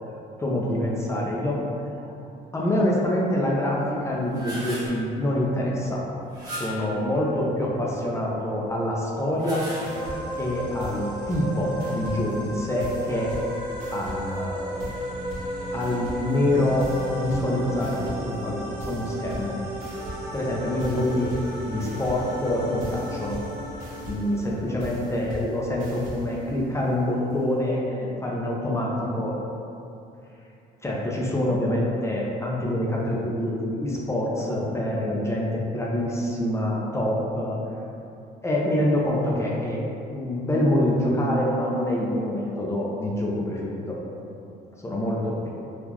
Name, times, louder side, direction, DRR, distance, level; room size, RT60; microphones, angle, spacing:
voice 1, 0.4-1.6 2.0-2.1 2.5-6.0 6.5-9.6 10.4-13.3 13.9-14.8 15.7-19.6 20.3-21.3 21.6-23.4 24.1-29.3 30.8-37.6 38.4-39.8 40.1-44.0 44.8-45.5, left 1 dB, 15° left, -4 dB, 0.5 m, -26 dB
sound 1, 4.1-5.0 6.3-7.0 9.2-10.2, equal, 25° right, 1.0 m, -36 dB
sound 2, 9.6-25.0, right 1 dB, 85° right, 0.8 m, -35 dB
sound 3, 9.8-27.8, equal, 55° right, 1.2 m, -38 dB
3.7 x 2.4 x 2.9 m, 2.7 s
cardioid pair, 110°, 17 cm